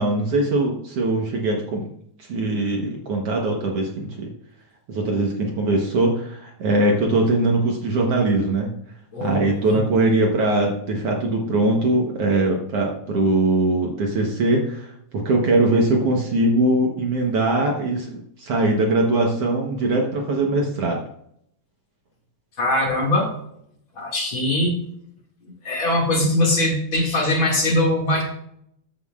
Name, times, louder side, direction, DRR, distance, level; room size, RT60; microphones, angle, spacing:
voice 1, 0.0-1.9 2.2-4.3 4.9-8.7 9.2-21.0, right 2 dB, 60° right, 0 dB, 1.9 m, -21 dB
voice 2, 9.1-9.8 22.6-23.3 24.0-24.8 25.6-28.2, left 1 dB, 40° left, -2 dB, 2.8 m, -21 dB
13.5 x 7.4 x 2.4 m, 0.71 s
omnidirectional pair, 3.5 m